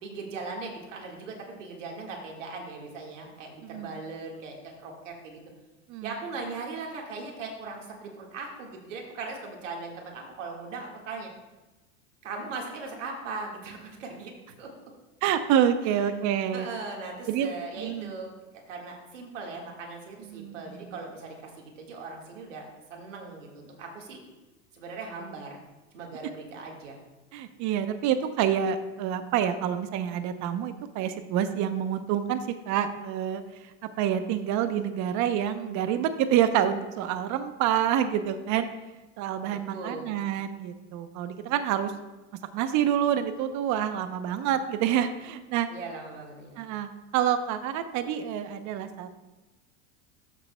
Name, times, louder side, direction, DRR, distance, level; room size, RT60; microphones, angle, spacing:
voice 1, 0.0-5.4 6.0-11.3 12.2-14.3 14.6-14.9 15.8-16.0 16.5-18.3 18.7-22.6 22.9-24.2 24.7-25.6 25.9-27.0 39.7-40.1 45.7-46.6, right 3 dB, 85° right, 1 dB, 1.8 m, -39 dB
voice 2, 15.2-16.7 17.3-18.1 20.3-20.9 27.3-33.7 34.0-38.7 39.2-41.9 42.5-45.7 46.6-49.1, right 9 dB, 50° right, 10 dB, 0.8 m, -27 dB
13.0 x 6.8 x 2.2 m, 1.1 s
hypercardioid pair, 95°, 37 cm